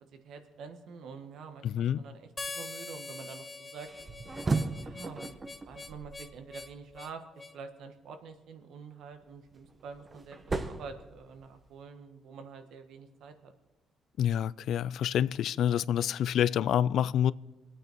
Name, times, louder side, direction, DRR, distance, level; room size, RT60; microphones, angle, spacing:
voice 1, 0.1-3.9 4.8-5.4 5.6-7.2 7.5-13.5, right 5 dB, 80° right, 1.4 m, -47 dB
voice 2, 1.6-2.0 14.2-17.3, left 10 dB, 75° left, 0.3 m, -27 dB
Harmonica, 2.4-7.6, left 3 dB, 25° left, 0.8 m, -44 dB
sound 1, 3.9-7.0 9.2-11.8, right 3 dB, 30° right, 1.0 m, -36 dB
23.0 x 8.9 x 4.5 m
cardioid pair, 90°, 0 cm